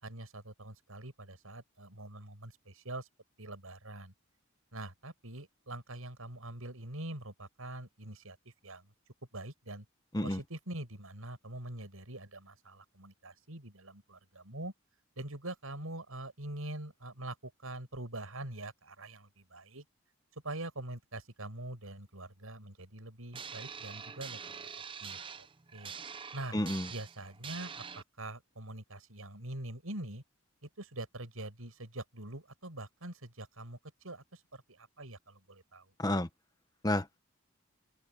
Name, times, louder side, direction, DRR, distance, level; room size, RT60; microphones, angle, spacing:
voice 1, 0.0-3.1 3.4-4.1 4.7-8.9 9.3-9.8 10.2-14.7 15.2-19.8 20.4-24.6 25.0-25.2 25.7-25.9 26.3-26.6 26.9-30.2 30.6-33.8 34.0-35.9, right 1 dB, 80° right, 6.4 m, -44 dB
sound 1, 23.3-28.0, right 6 dB, 25° right, 0.6 m, -45 dB
voice 2, 26.5-26.9 36.0-36.3 36.8-37.2, left 1 dB, 20° left, 1.1 m, -31 dB
open air
head